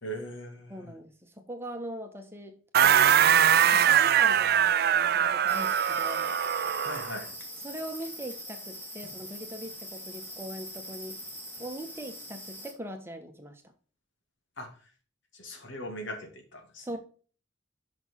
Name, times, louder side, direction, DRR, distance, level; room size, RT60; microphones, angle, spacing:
voice 1, 0.0-0.9 6.8-7.3 14.6-14.9 15.3-16.9, equal, 75° left, 4 dB, 2.1 m, -40 dB
voice 2, 0.7-6.3 7.6-11.2 11.6-13.6 16.8-17.0, right 1 dB, 10° right, 4 dB, 1.2 m, -41 dB
sound 1, 2.7-7.1, right 9 dB, 55° right, 0.4 m, -22 dB
sound 2, 5.5-12.7, equal, 10° left, 2.0 m, -42 dB
6.3 x 6.1 x 4.6 m, 0.39 s
head